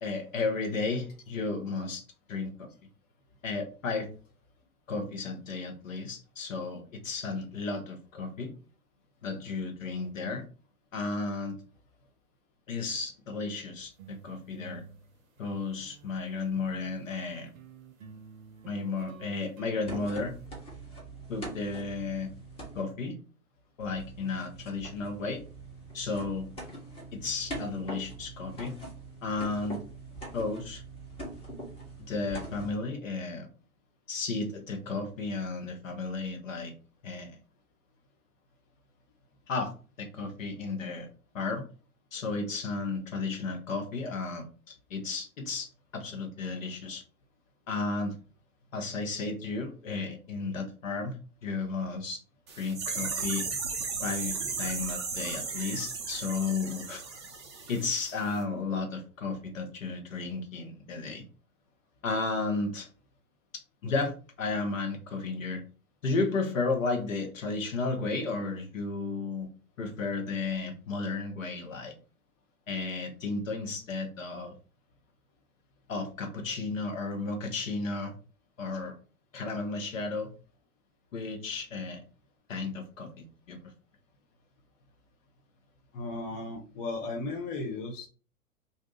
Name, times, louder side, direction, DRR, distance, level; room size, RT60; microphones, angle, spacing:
voice 1, 0.0-2.0 2.3-2.7 3.4-4.1 4.9-8.5 9.2-10.4 10.9-11.6 12.7-14.8 15.4-17.5 18.6-20.3 21.3-22.3 22.7-23.2 23.8-25.4 25.9-26.5 27.1-28.8 29.2-29.8 30.3-30.8 32.1-33.5 34.1-36.7 37.0-37.4 39.5-39.7 40.0-41.1 41.3-41.6 42.1-47.0 47.7-48.1 48.7-51.2 51.4-52.2 52.6-53.5 54.0-57.0 57.7-61.2 62.0-62.9 63.8-65.6 66.0-69.5 69.8-72.0 72.7-74.5 75.9-78.1 78.6-79.0 79.3-80.3 81.1-82.0 82.5-83.6, left 3 dB, 60° left, 3 dB, 1.0 m, -33 dB
sound 1, 13.9-16.2 16.6-20.5, right 6 dB, 65° right, 0.6 m, -51 dB
sound 2, 19.9-22.8 23.8-32.8, right 1 dB, 15° left, 1.0 m, -43 dB
sound 3, 52.5-58.1 58.4-58.5, right 4 dB, 20° right, 0.3 m, -35 dB
voice 2, 85.9-88.1, left 3 dB, 35° left, 1 dB, 0.7 m, -35 dB
2.6 x 2.4 x 3.8 m, 0.36 s
figure-of-eight pair, 100°, 43 cm